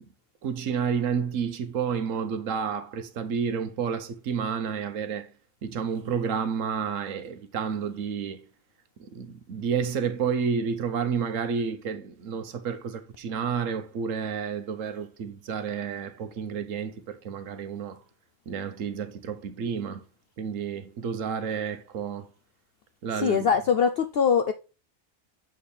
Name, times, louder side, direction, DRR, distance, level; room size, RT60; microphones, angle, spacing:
voice 1, 0.4-5.3 5.6-8.5 9.0-18.0 18.5-20.0 20.4-22.3 23.0-23.5, right 6 dB, 70° right, 1.2 m, -30 dB
voice 2, 23.2-24.5, left 6 dB, 70° left, 0.6 m, -22 dB
7.4 x 4.3 x 3.3 m
omnidirectional pair, 1.5 m